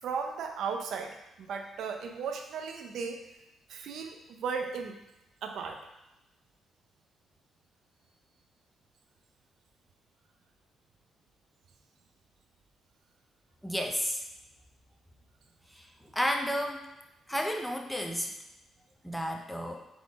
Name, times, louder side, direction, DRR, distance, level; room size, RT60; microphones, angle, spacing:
voice 1, 0.0-3.2 3.7-5.0 5.4-5.8, right 5 dB, 70° right, 4 dB, 0.6 m, -36 dB
voice 2, 13.6-14.2 15.7-15.9 16.1-16.8 17.3-18.3 19.0-19.8, equal, 5° left, 3 dB, 0.6 m, -31 dB
4.0 x 3.8 x 3.5 m, 0.93 s
cardioid pair, 90°, 0 cm